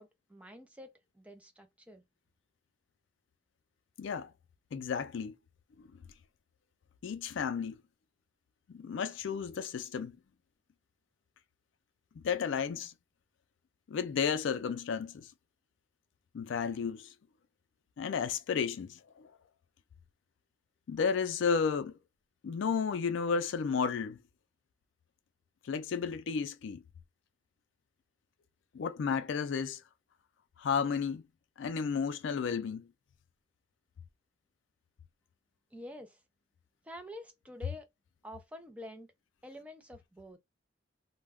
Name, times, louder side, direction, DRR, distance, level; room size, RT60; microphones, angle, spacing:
voice 1, 0.0-2.0 35.7-36.2 36.8-37.9 38.2-39.1 39.4-40.4, left 1 dB, 5° right, 0.4 m, -48 dB
voice 2, 4.0-4.3 4.7-5.4 5.8-5.9 7.0-7.8 8.7-10.2 12.2-12.9 13.9-15.3 16.3-17.1 18.0-19.3 20.9-22.0 22.4-24.2 25.6-26.8 28.7-29.8 30.6-31.2 31.6-32.9, left 6 dB, 75° left, 0.4 m, -32 dB
2.3 x 2.1 x 3.4 m
head